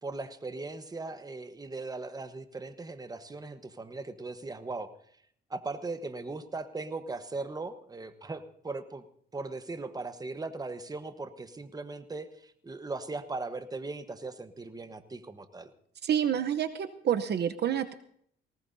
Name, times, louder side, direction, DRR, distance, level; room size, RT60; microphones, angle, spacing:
voice 1, 0.0-4.9 5.5-9.0 9.3-15.7, right 3 dB, 20° right, 10 dB, 1.1 m, -39 dB
voice 2, 16.0-17.9, right 9 dB, 55° right, 9 dB, 0.9 m, -28 dB
19.0 x 18.5 x 2.7 m, 0.64 s
cardioid pair, 90°, 20 cm